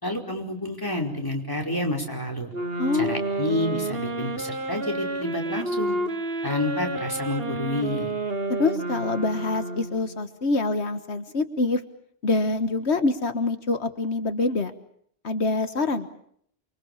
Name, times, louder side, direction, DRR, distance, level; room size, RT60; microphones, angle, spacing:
voice 1, 0.0-2.5 2.9-6.0 6.4-8.1, left 1 dB, 20° left, 2 dB, 4.9 m, -29 dB
sound 1, 2.5-10.2, right 2 dB, 65° right, 1.9 m, -30 dB
voice 2, 2.8-3.1 8.5-11.8 12.2-14.7 15.2-16.1, left 3 dB, 80° left, 9 dB, 1.7 m, -25 dB
29.5 x 24.0 x 7.2 m, 0.66 s
omnidirectional pair, 1.1 m